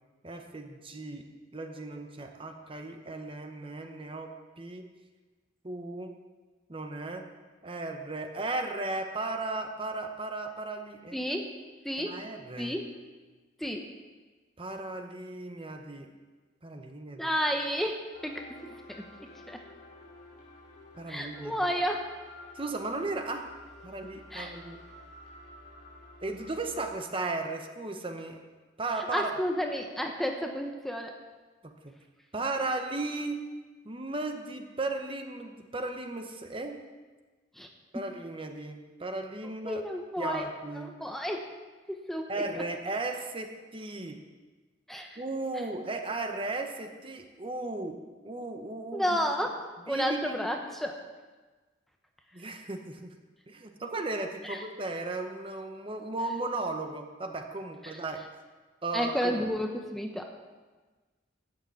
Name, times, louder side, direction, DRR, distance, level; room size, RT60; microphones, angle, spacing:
voice 1, 0.2-1.3 1.5-4.3 4.6-4.9 5.6-6.1 6.7-7.3 7.6-11.2 12.0-12.8 14.6-16.1 16.6-17.3 21.0-21.6 22.5-23.4 23.8-24.8 26.2-28.4 28.8-29.3 31.6-31.9 32.3-33.4 33.8-36.8 37.9-39.8 40.2-40.9 42.3-44.2 45.2-48.0 48.2-49.5 49.9-50.3 52.3-53.1 53.5-58.2 58.8-59.4, right 2 dB, 30° right, 5 dB, 1.0 m, -36 dB
voice 2, 11.1-11.5 11.8-12.2 12.6-12.8 13.6-13.9 17.2-19.0 19.5-19.6 21.1-22.0 24.3-24.6 29.1-31.1 37.6-37.7 39.7-40.5 40.8-41.5 41.9-42.4 44.9-45.2 48.9-49.6 49.9-51.0 54.4-54.6 58.9-60.3, equal, ahead, 3 dB, 0.8 m, -31 dB
sound 1, 18.1-26.9, left 1 dB, 45° left, 2.8 m, -51 dB
12.5 x 6.7 x 8.6 m, 1.3 s
head